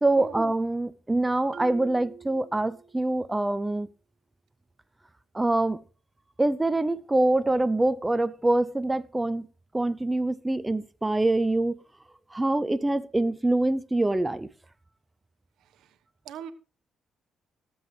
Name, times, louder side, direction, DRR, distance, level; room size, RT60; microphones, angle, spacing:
voice 1, 0.0-3.9 5.3-5.8 6.4-9.5 9.7-11.8 12.3-14.5, right 2 dB, 15° right, 0.6 m, -25 dB
Marimba xylophone, 1.5-3.3, right 7 dB, 50° right, 1.0 m, -45 dB
voice 2, 15.6-16.0 16.2-16.5, right 8 dB, 80° right, 1.1 m, -41 dB
18.5 x 7.8 x 3.2 m
cardioid pair, 90°, 0 cm